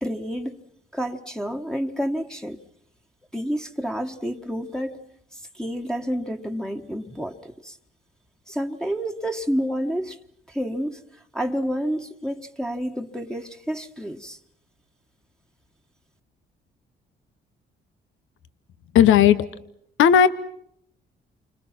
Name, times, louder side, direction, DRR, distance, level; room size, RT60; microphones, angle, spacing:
voice 1, 0.0-0.6 0.9-2.6 3.3-7.8 8.5-10.2 10.5-11.0 11.3-14.4, equal, 5° left, 1.5 m, -29 dB
voice 2, 18.9-19.4 20.0-20.3, left 9 dB, 85° left, 1.1 m, -14 dB
29.0 x 25.5 x 6.0 m
cardioid pair, 90°, 20 cm